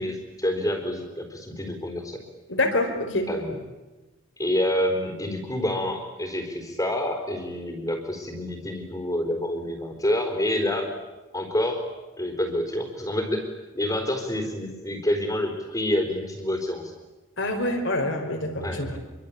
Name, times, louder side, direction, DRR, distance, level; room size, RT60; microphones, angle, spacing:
voice 1, 0.0-2.2 3.3-3.6 4.4-10.9 11.3-11.9 12.2-13.4 13.7-16.9 18.6-19.0, left 1 dB, 20° left, 3 dB, 4.2 m, -27 dB
voice 2, 2.5-3.3 17.4-18.9, left 1 dB, 70° left, 5 dB, 5.1 m, -26 dB
26.5 x 24.5 x 8.6 m, 1.1 s
head